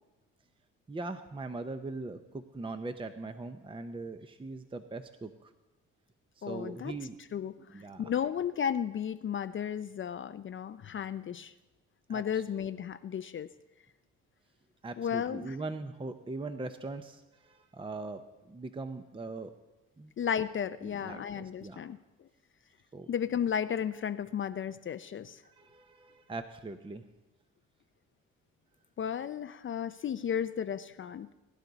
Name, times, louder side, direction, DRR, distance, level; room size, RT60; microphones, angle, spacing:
voice 1, 0.9-5.5 6.4-7.2 7.7-8.1 12.1-12.4 14.8-18.2 18.5-19.5 20.0-20.1 20.8-21.8 22.9-23.1 25.4-27.0, right 3 dB, 15° right, 8 dB, 0.7 m, -41 dB
voice 2, 6.4-6.9 7.3-11.5 12.1-13.5 15.0-15.6 20.2-22.0 23.1-25.4 29.0-31.3, left 8 dB, 40° left, 11 dB, 0.5 m, -34 dB
20.5 x 11.0 x 4.0 m, 1.1 s
cardioid pair, 90°, 30 cm